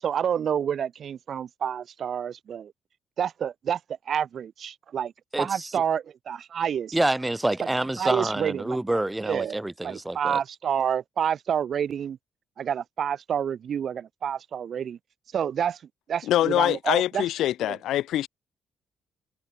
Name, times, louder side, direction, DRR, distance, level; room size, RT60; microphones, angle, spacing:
voice 1, 0.0-2.7 3.2-3.8 4.1-5.1 5.4-7.0 7.6-7.7 8.0-8.8 9.2-12.2 12.6-15.0 15.3-15.8 16.1-17.2 17.7-17.8, right 8 dB, 60° right, 6.4 m, -28 dB
voice 2, 5.3-5.7 6.9-10.4, right 1 dB, 10° right, 4.9 m, -27 dB
voice 3, 16.3-18.3, left 13 dB, 80° left, 1.5 m, -24 dB
cardioid pair, 90°, 0 cm